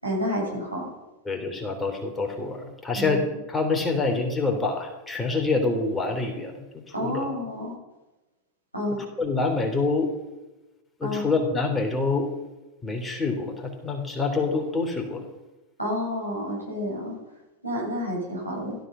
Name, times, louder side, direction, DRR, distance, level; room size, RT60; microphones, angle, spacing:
voice 1, 0.0-0.9 2.9-3.2 6.9-7.7 8.7-9.0 11.0-11.3 15.8-17.2 17.6-18.8, equal, 90° right, -4 dB, 7.2 m, -29 dB
voice 2, 1.2-2.6 2.8-6.6 7.0-7.3 9.2-10.1 11.0-12.3 12.8-15.2, left 3 dB, 10° left, 3 dB, 3.4 m, -26 dB
16.5 x 13.5 x 5.7 m, 1.0 s
figure-of-eight pair, 90°, 0 cm